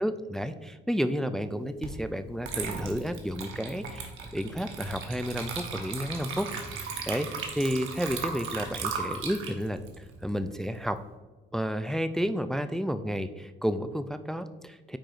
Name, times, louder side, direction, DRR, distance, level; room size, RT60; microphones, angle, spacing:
voice 1, 0.0-6.5 6.7-11.0 11.5-15.0, equal, ahead, 10 dB, 0.3 m, -31 dB
Water / Liquid, 1.8-2.0 2.4-10.9, right 5 dB, 80° right, 1.1 m, -37 dB
8.9 x 4.8 x 2.5 m, 1.3 s
cardioid pair, 90°, 20 cm